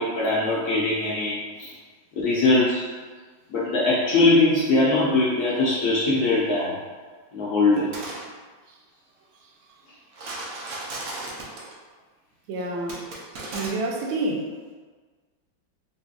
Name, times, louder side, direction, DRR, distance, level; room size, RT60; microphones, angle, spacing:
voice 1, 0.0-1.7 2.2-2.9 3.5-6.8 7.3-7.9, left 2 dB, 65° left, -6 dB, 1.0 m, -21 dB
sound 1, 7.8-8.2 10.1-11.7 12.9-13.7, right 2 dB, 60° right, 1.0 m, -35 dB
voice 2, 12.5-13.1 13.4-14.5, right 2 dB, 80° right, -1 dB, 1.4 m, -28 dB
4.2 x 3.1 x 2.3 m, 1.4 s
omnidirectional pair, 2.2 m